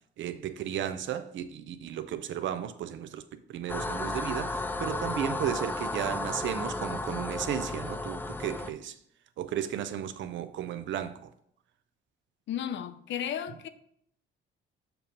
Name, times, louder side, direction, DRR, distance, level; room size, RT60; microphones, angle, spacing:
voice 1, 0.2-3.2 3.5-9.0 9.4-11.3, right 10 dB, 70° right, 0.5 m, -34 dB
sound 1, 3.7-8.7, left 2 dB, 10° left, 0.3 m, -33 dB
voice 2, 12.5-13.7, left 9 dB, 70° left, 0.5 m, -34 dB
6.7 x 3.0 x 5.2 m
cardioid pair, 90°, 20 cm